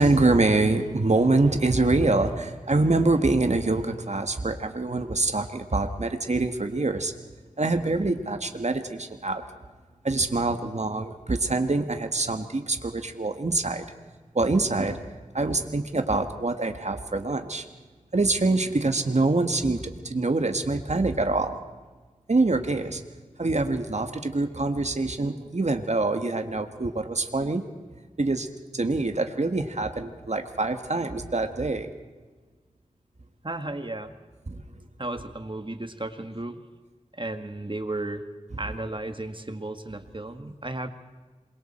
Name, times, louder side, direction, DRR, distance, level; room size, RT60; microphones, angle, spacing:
voice 1, 0.0-7.1 7.6-9.4 10.0-13.9 14.3-15.1 15.3-17.7 18.1-21.6 22.3-23.1 23.4-27.6 28.2-31.9 34.5-34.8, right 2 dB, 60° right, 7 dB, 1.6 m, -25 dB
voice 2, 33.4-34.1 35.0-36.6 37.1-38.3 38.6-40.9, right 2 dB, 40° right, 8 dB, 1.9 m, -34 dB
28.0 x 22.5 x 4.4 m, 1.3 s
wide cardioid pair, 40°, 13 cm